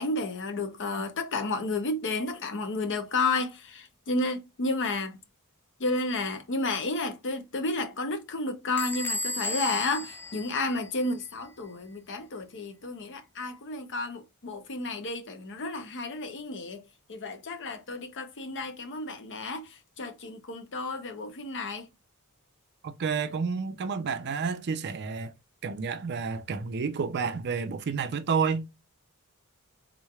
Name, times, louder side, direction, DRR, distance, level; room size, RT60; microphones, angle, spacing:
voice 1, 0.0-5.2 5.8-16.8 17.1-21.9, left 2 dB, 55° left, 0.7 m, -32 dB
Bell / Squeak, 8.8-11.3, left 1 dB, 10° left, 0.4 m, -35 dB
voice 2, 22.8-25.3 25.6-28.9, right 5 dB, 50° right, 0.4 m, -30 dB
3.7 x 3.1 x 2.3 m
head